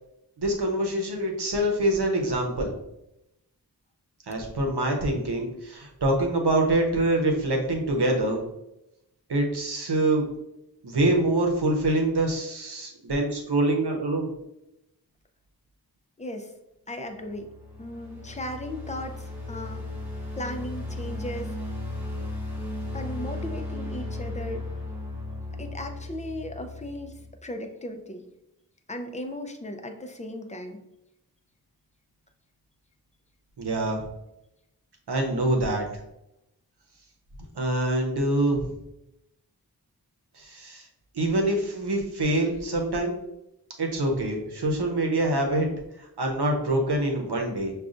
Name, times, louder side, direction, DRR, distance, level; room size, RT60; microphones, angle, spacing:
voice 1, 0.4-2.7 4.3-8.4 9.3-10.2 10.8-14.3 33.6-34.0 35.1-35.9 37.6-38.7 40.4-40.9 41.1-43.1 43.8-45.7 46.0-47.7, right 1 dB, 90° right, 2 dB, 0.7 m, -25 dB
voice 2, 16.2-16.5 16.9-17.5 17.8-19.9 20.4-21.5 22.9-24.7 25.6-27.1 27.4-28.3 28.9-30.8, left 1 dB, 20° left, 5 dB, 0.5 m, -36 dB
sound 1, 17.1-27.3, left 2 dB, 5° right, 1.2 m, -36 dB
6.0 x 2.3 x 2.5 m, 0.87 s
wide cardioid pair, 45°, 39 cm